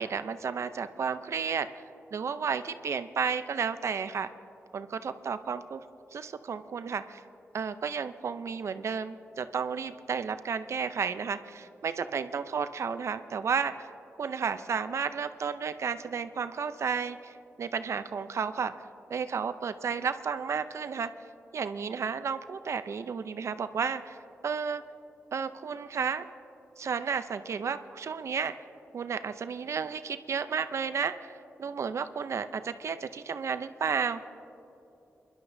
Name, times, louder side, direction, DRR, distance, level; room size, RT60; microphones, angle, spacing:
voice 1, 0.0-1.7 2.1-4.3 4.7-5.8 6.1-7.2 7.5-13.9 14.2-18.7 19.1-21.1 21.5-24.2 24.4-24.8 25.3-26.3 26.8-28.5 28.9-34.2, right 6 dB, 70° right, 11 dB, 0.5 m, -32 dB
28.0 x 11.5 x 2.7 m, 2.8 s
cardioid pair, 70°, 5 cm